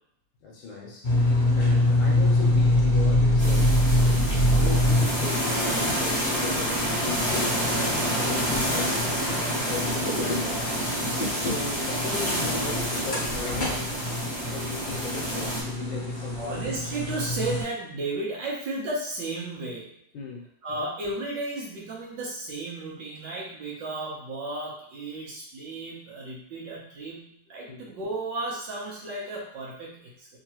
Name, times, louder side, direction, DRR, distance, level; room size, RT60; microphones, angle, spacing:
voice 1, 0.4-4.2 4.6-7.8 8.1-10.6 11.4-13.9 14.5-16.7 20.1-20.5 27.7-27.8, left 4 dB, 70° left, -1 dB, 1.3 m, -37 dB
sound 1, 1.0-17.6, left 1 dB, 85° left, 0.4 m, -25 dB
sound 2, 3.4-15.6, equal, 5° left, 0.8 m, -28 dB
voice 2, 16.3-19.9 20.6-30.3, right 2 dB, 65° right, -4 dB, 1.4 m, -34 dB
3.7 x 2.9 x 2.9 m, 0.71 s
omnidirectional pair, 2.4 m